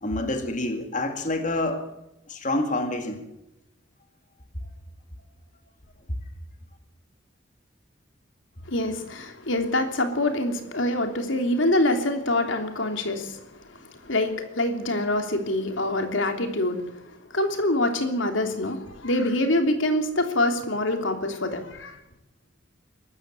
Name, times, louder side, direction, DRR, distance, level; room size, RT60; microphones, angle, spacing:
voice 1, 0.0-1.8 2.3-3.3, left 2 dB, 40° left, 5 dB, 2.2 m, -27 dB
voice 2, 8.7-22.0, left 1 dB, 85° left, 5 dB, 3.1 m, -25 dB
22.5 x 13.5 x 9.7 m, 0.90 s
head